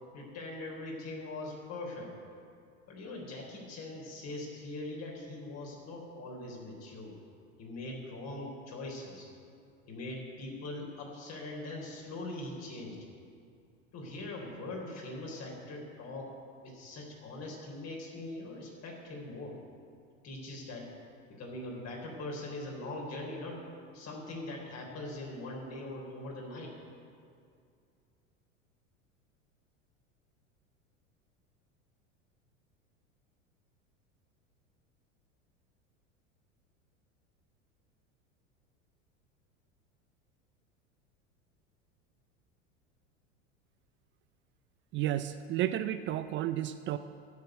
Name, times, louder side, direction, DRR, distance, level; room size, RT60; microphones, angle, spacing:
voice 1, 0.1-2.1 2.9-7.2 7.6-9.3 9.9-13.0 13.9-16.3 16.6-19.6 20.2-20.9 21.3-23.6 23.9-26.7, left 2 dB, 40° left, -1 dB, 3.7 m, -41 dB
voice 2, 44.9-47.0, right 12 dB, 30° right, 12 dB, 0.4 m, -32 dB
11.5 x 6.8 x 9.2 m, 2.3 s
hypercardioid pair, 85°, 39 cm